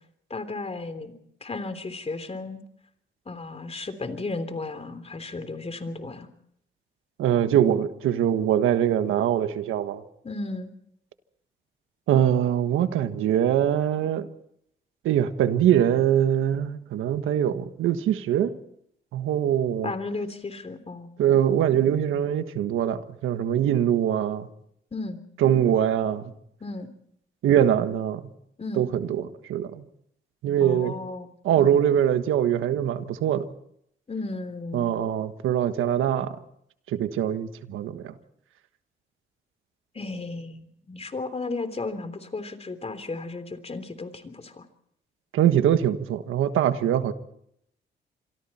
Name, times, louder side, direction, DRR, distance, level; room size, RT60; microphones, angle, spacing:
voice 1, 0.3-1.1 1.4-2.6 3.2-6.3 10.2-10.7 19.8-21.1 24.9-25.2 26.6-26.9 28.6-28.8 30.6-31.3 31.6-31.8 34.1-34.9 39.9-44.6, left 3 dB, 30° left, 10 dB, 3.3 m, -34 dB
voice 2, 7.2-10.0 12.1-14.3 15.0-18.6 19.1-19.9 21.2-24.5 25.4-26.3 27.4-28.2 28.8-29.8 30.4-31.0 31.4-33.5 34.7-36.4 36.9-38.1 45.3-47.1, right 10 dB, 85° right, 10 dB, 1.4 m, -23 dB
26.5 x 23.5 x 4.3 m, 0.71 s
cardioid pair, 80°, 20 cm